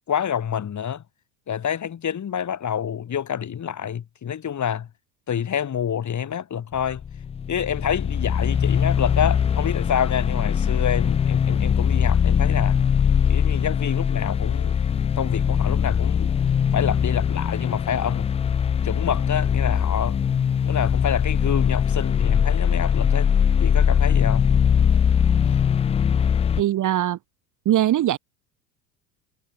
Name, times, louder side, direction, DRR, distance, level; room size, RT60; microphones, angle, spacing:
voice 1, 0.1-1.0 1.5-4.9 5.3-7.0 7.5-12.8 13.3-14.8 15.2-16.3 16.7-18.3 18.8-20.2 20.7-23.3 23.6-24.5, left 8 dB, 35° left, 5.4 m, -27 dB
sound 1, 6.8-26.6, left 7 dB, 15° left, 0.4 m, -21 dB
voice 2, 26.6-27.2 27.6-28.2, right 12 dB, 40° right, 1.4 m, -21 dB
hypercardioid pair, 75°, 50 cm